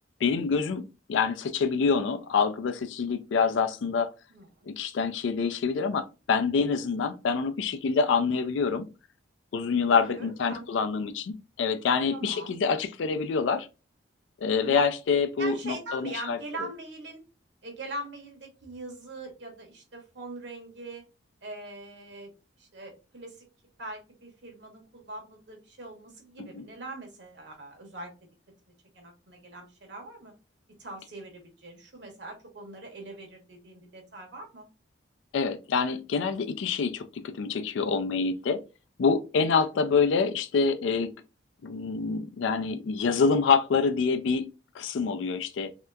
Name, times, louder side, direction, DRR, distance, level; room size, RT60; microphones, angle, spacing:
voice 1, 0.2-0.8 1.1-4.1 4.7-8.8 9.5-13.7 14.4-16.4 26.4-26.6 35.3-37.0 37.3-38.6 39.0-41.1 41.6-44.5 44.7-45.7, left 5 dB, 80° left, 0.4 m, -26 dB
voice 2, 4.3-4.7 9.8-10.6 12.1-12.6 14.5-14.8 15.4-17.2 17.6-21.0 21.4-22.3 22.6-23.5 23.8-28.1 28.9-30.3 30.7-34.7 39.5-39.6, right 2 dB, 65° right, 1.1 m, -42 dB
3.3 x 2.8 x 2.3 m
head